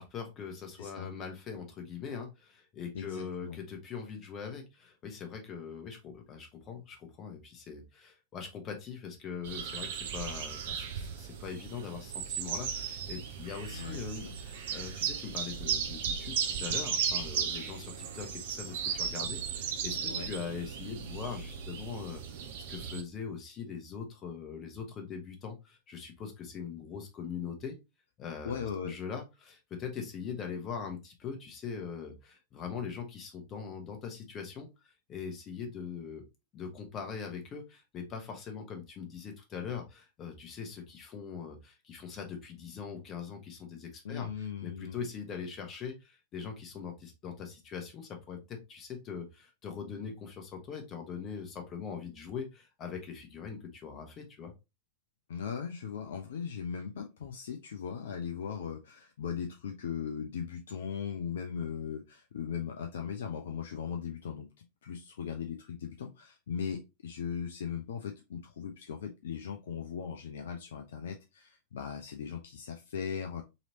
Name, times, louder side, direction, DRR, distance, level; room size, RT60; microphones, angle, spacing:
voice 1, 0.0-22.4 22.7-27.8 28.2-36.2 36.5-54.5, left 6 dB, 30° left, 4 dB, 1.1 m, -42 dB
voice 2, 0.8-1.1 2.9-3.6 13.7-14.3 20.1-20.3 28.4-29.0 44.0-45.0 55.3-73.4, left 7 dB, 60° left, 4 dB, 0.5 m, -38 dB
sound 1, 9.4-23.0, right 7 dB, 55° right, 0.6 m, -36 dB
4.0 x 3.0 x 2.8 m, 0.25 s
figure-of-eight pair, 90°, 0 cm